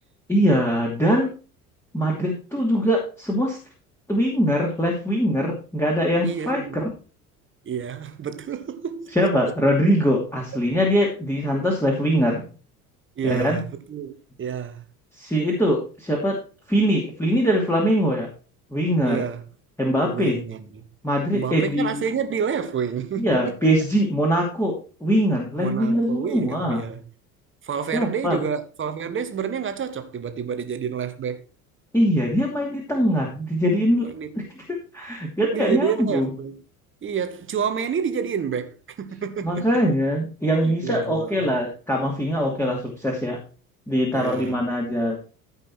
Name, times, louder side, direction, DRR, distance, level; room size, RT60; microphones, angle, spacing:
voice 1, 0.3-1.3 1.9-3.6 4.1-6.9 9.1-12.5 13.2-13.6 15.1-16.4 16.7-18.3 18.7-19.2 19.8-20.4 21.0-22.0 23.2-26.8 27.9-28.4 31.9-34.1 34.9-36.3 39.4-43.4 43.9-45.2, equal, 5° left, 2.6 m, -22 dB
voice 2, 6.2-6.8 7.6-9.5 13.2-14.8 19.0-19.4 20.1-20.8 21.3-23.5 25.6-27.0 27.6-31.4 34.0-34.3 35.5-36.6 37.0-39.7 40.6-41.5 44.1-44.6, right 7 dB, 25° right, 1.4 m, -29 dB
14.5 x 5.6 x 4.4 m
figure-of-eight pair, 65°, 45 cm